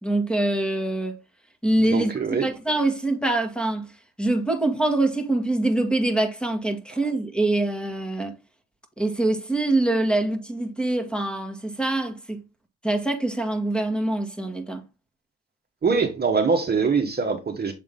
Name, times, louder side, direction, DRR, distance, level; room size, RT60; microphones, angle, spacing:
voice 1, 0.0-1.2 1.6-2.1 2.4-3.9 4.2-8.3 9.0-12.4 12.8-14.8, right 2 dB, 5° left, 1.6 m, -24 dB
voice 2, 1.9-2.5 15.8-17.7, right 5 dB, 30° right, 1.3 m, -23 dB
7.3 x 3.7 x 3.7 m
cardioid pair, 90°, 30 cm